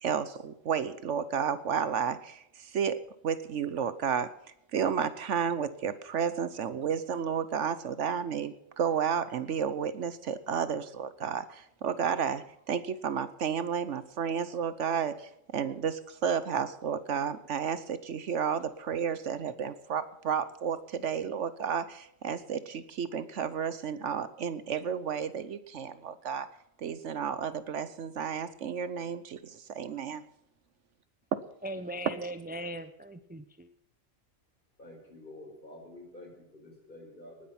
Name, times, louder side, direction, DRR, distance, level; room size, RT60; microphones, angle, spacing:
voice 1, 0.0-4.3 4.7-26.5 26.8-30.2, right 7 dB, 70° right, 14 dB, 1.1 m, -32 dB
voice 2, 31.6-33.7, right 1 dB, 15° right, 10 dB, 0.4 m, -39 dB
voice 3, 34.8-37.5, left 1 dB, 40° left, 1 dB, 5.0 m, -49 dB
19.0 x 9.8 x 5.9 m, 0.81 s
omnidirectional pair, 1.3 m